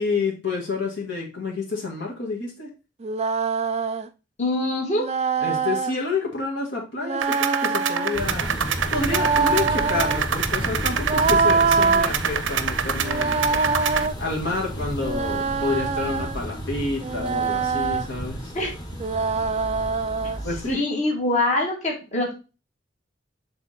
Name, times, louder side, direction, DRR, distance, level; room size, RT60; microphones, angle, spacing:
voice 1, 0.0-2.7 5.4-8.5 8.9-13.4 14.2-18.5 20.4-20.8, left 3 dB, 65° left, -2 dB, 1.9 m, -29 dB
sound 1, 3.0-4.1 5.0-6.0 7.0-8.2 9.0-10.3 11.0-12.1 13.0-14.1 15.0-16.4 17.0-18.1 19.0-20.4, right 4 dB, 35° right, 0.4 m, -24 dB
voice 2, 4.4-5.0 18.5-18.7 20.7-22.3, left 2 dB, 40° left, -1 dB, 2.1 m, -24 dB
sound 2, 7.2-14.1, right 7 dB, 90° right, 0.7 m, -27 dB
sound 3, 8.1-20.7, equal, 20° left, 1.3 m, -33 dB
7.1 x 3.6 x 4.2 m, 0.30 s
head